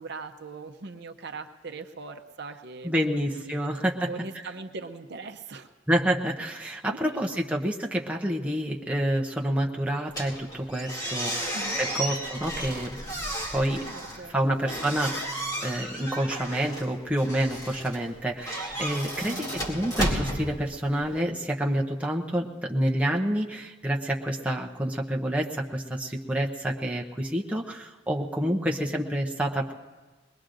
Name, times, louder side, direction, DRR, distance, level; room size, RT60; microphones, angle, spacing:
voice 1, 0.0-3.6 4.1-5.7 6.9-7.2 11.5-11.8 13.8-14.4 19.2-19.5, right 3 dB, 60° right, 6 dB, 0.7 m, -40 dB
voice 2, 2.8-4.1 5.9-13.0 13.5-13.8 14.3-19.4 19.7-29.7, right 1 dB, 5° right, -1 dB, 0.7 m, -28 dB
sound 1, 10.1-21.2, equal, 20° left, 2.4 m, -34 dB
22.5 x 20.0 x 2.6 m, 1.3 s
head